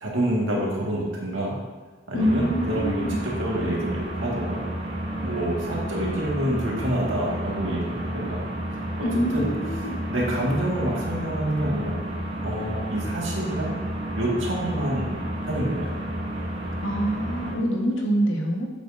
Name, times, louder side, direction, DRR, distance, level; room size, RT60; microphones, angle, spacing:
voice 1, 0.0-1.5 2.1-4.6 5.2-8.4 9.0-9.5 10.1-12.0 12.4-13.7 14.2-15.2 15.5-15.9, right 1 dB, 90° right, -4 dB, 1.9 m, -27 dB
voice 2, 2.1-3.2 9.0-10.0 16.8-18.7, equal, 90° left, 0 dB, 1.4 m, -25 dB
sound 1, 2.2-17.5, right 1 dB, 25° right, 1.0 m, -31 dB
8.2 x 7.3 x 2.6 m, 1.3 s
head